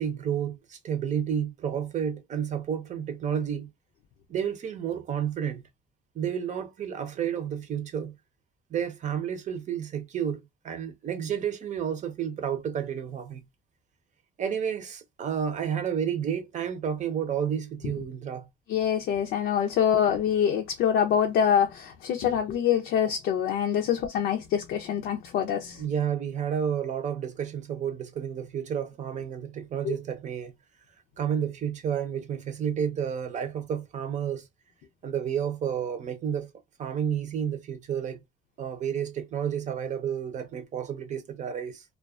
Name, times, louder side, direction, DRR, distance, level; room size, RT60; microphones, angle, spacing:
voice 1, 0.0-3.7 4.3-5.7 6.1-8.1 8.7-13.4 14.4-18.5 23.7-23.8 25.8-30.5 31.2-34.5 35.0-36.5 36.8-38.2 38.6-41.8, right 8 dB, 45° right, 0.7 m, -31 dB
voice 2, 18.7-25.8 29.8-30.0, left 8 dB, 75° left, 0.5 m, -25 dB
2.3 x 2.2 x 2.3 m
cardioid pair, 110°, 17 cm